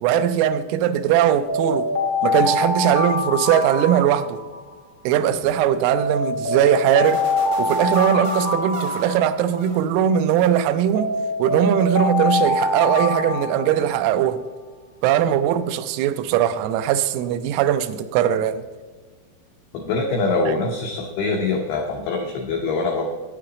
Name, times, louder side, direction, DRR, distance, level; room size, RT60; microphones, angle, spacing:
voice 1, 0.0-1.9 2.2-4.4 5.0-7.2 7.6-11.1 11.4-14.4 15.0-18.6, right 10 dB, 85° right, 3.2 m, -20 dB
Alarm, 1.5-4.8 5.9-9.8 10.9-14.2, left 2 dB, 65° left, 1.6 m, -24 dB
sound 1, 7.0-10.0 10.4-11.0, right 3 dB, 60° right, 3.2 m, -38 dB
voice 2, 19.7-23.1, left 3 dB, 85° left, 2.3 m, -24 dB
9.9 x 8.9 x 3.9 m
omnidirectional pair, 5.9 m